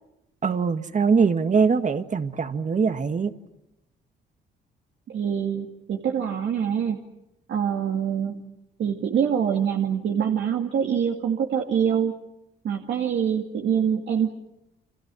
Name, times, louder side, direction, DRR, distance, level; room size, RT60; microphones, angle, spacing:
voice 1, 0.4-3.3, right 5 dB, 40° right, 1.8 m, -22 dB
voice 2, 5.1-7.0 7.5-8.4 8.8-12.1 12.6-14.3, right 8 dB, 65° right, 2.3 m, -25 dB
29.5 x 26.0 x 6.3 m
cardioid pair, 90°, 20 cm